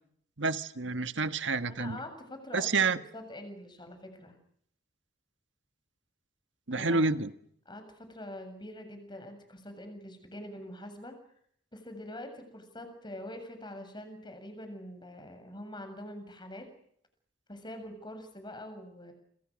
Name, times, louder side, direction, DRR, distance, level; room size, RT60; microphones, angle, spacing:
voice 1, 0.4-2.0 2.5-3.0 6.7-7.3, right 3 dB, 75° right, 10 dB, 1.6 m, -29 dB
voice 2, 1.7-4.4 6.7-7.1 7.7-11.1 11.7-16.7 17.5-19.1, left 1 dB, 25° left, 7 dB, 7.5 m, -44 dB
29.5 x 27.5 x 6.5 m, 0.68 s
head